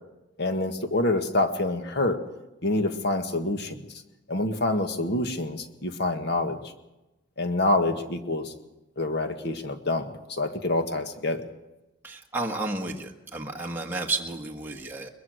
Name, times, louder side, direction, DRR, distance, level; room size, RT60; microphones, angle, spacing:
voice 1, 0.4-2.2 2.6-3.8 4.3-6.6 7.4-8.5 9.0-11.4, left 2 dB, 55° left, 7 dB, 1.6 m, -26 dB
voice 2, 12.0-15.1, right 2 dB, 10° right, 0 dB, 1.5 m, -32 dB
22.5 x 21.5 x 6.4 m, 1.0 s
head